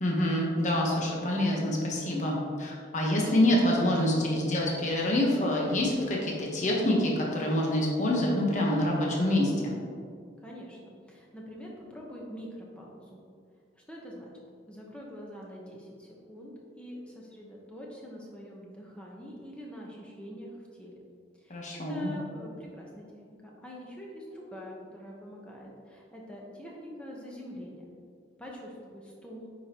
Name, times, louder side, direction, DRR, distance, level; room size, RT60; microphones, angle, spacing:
voice 1, 0.0-9.8 21.5-22.1, left 1 dB, 40° left, -2 dB, 1.1 m, -26 dB
voice 2, 10.4-13.2 13.9-14.3 14.7-20.5 20.8-21.0 21.4-23.2 23.6-27.8 28.4-29.5, equal, 5° left, -3 dB, 1.0 m, -45 dB
9.0 x 5.2 x 3.0 m, 2.2 s
head